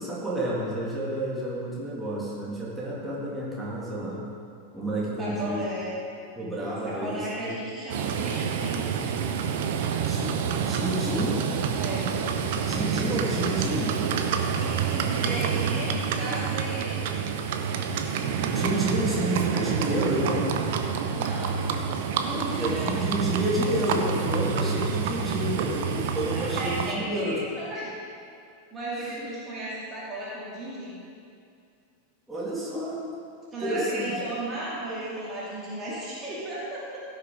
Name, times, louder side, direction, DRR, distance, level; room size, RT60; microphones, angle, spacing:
voice 1, 0.0-4.2 4.7-5.7 6.4-7.5 9.9-11.4 12.6-14.0 18.5-20.5 22.2-27.4 32.3-33.1 33.6-34.2, right 1 dB, 5° right, -7 dB, 2.7 m, -30 dB
voice 2, 5.2-6.0 6.8-8.8 11.7-12.1 14.5-17.2 21.1-21.6 22.3-23.0 26.3-27.9 28.7-31.0 33.5-37.0, right 1 dB, 20° right, -7 dB, 2.5 m, -35 dB
Livestock farm animals working animals, 7.9-26.9, right 6 dB, 50° right, 0.8 m, -28 dB
16.0 x 6.7 x 3.9 m, 2.4 s
figure-of-eight pair, 90°, 0 cm